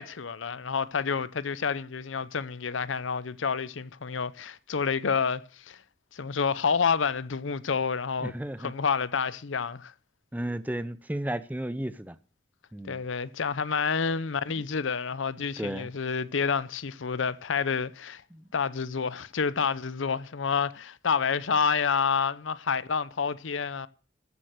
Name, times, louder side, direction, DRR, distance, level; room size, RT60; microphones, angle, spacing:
voice 1, 0.0-5.8 6.1-8.3 8.6-9.9 12.9-18.2 18.5-23.9, left 6 dB, 80° left, 0.7 m, -29 dB
voice 2, 8.2-8.7 10.3-12.2 12.7-13.0 14.6-14.7 15.6-15.9 18.3-18.5, right 1 dB, 10° right, 0.6 m, -34 dB
13.5 x 7.6 x 6.4 m
head